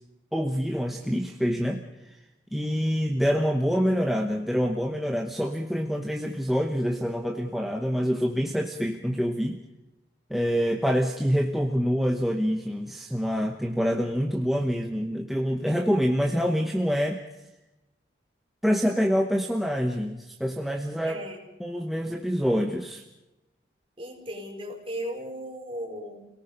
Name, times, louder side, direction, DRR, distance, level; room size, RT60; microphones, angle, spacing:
voice 1, 0.3-2.2 2.5-9.6 10.3-17.2 18.6-21.2 21.6-23.0, equal, ahead, 2 dB, 0.9 m, -26 dB
voice 2, 21.0-21.5 24.0-26.3, equal, 30° right, 0 dB, 4.5 m, -36 dB
30.0 x 18.0 x 5.3 m, 0.98 s
head